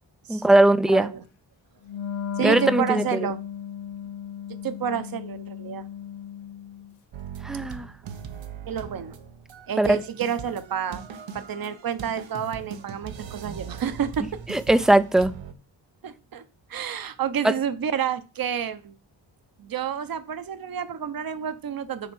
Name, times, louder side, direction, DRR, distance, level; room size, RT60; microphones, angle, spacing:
voice 1, 0.3-1.1 2.4-3.3 7.4-7.9 9.8-10.0 14.5-15.3 17.4-17.5, right 1 dB, ahead, 14 dB, 0.3 m, -19 dB
voice 2, 0.9-1.2 2.4-3.4 4.6-5.8 8.7-9.2 9.7-11.0 11.3-14.3 16.0-16.4 16.7-18.9 19.6-22.1, right 8 dB, 50° right, 12 dB, 0.8 m, -29 dB
Wind instrument woodwind instrument, 1.8-6.9, left 8 dB, 85° left, 1.2 m, -35 dB
sound 1, 7.1-15.5, right 7 dB, 85° right, 1.1 m, -40 dB
6.9 x 4.5 x 6.2 m, 0.33 s
wide cardioid pair, 145°, 44 cm